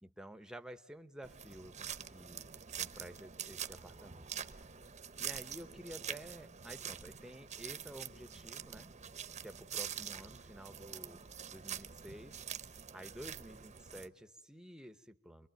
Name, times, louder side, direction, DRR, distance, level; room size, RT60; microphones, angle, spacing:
voice 1, 0.0-2.4 2.7-4.3 5.2-8.9 9.4-11.2 11.5-12.4 12.9-15.5, equal, 5° right, 9 dB, 0.9 m, -51 dB
sound 1, 1.2-14.1, right 8 dB, 35° right, 0.9 m, -45 dB
28.5 x 22.5 x 9.0 m, 0.98 s
head